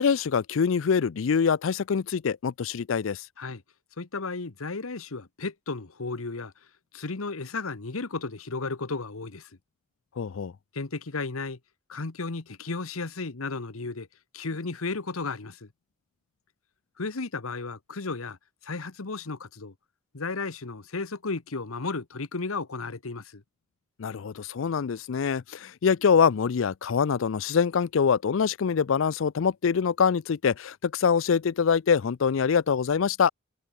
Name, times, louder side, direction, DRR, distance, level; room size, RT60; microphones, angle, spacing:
voice 1, 0.0-3.3 10.2-10.5 24.0-33.3, left 6 dB, 70° left, 0.4 m, -24 dB
voice 2, 4.0-6.5 6.9-9.5 10.7-11.6 11.9-14.1 14.3-15.7 17.0-18.4 18.6-19.7 20.1-23.4, left 3 dB, 90° left, 1.2 m, -34 dB
head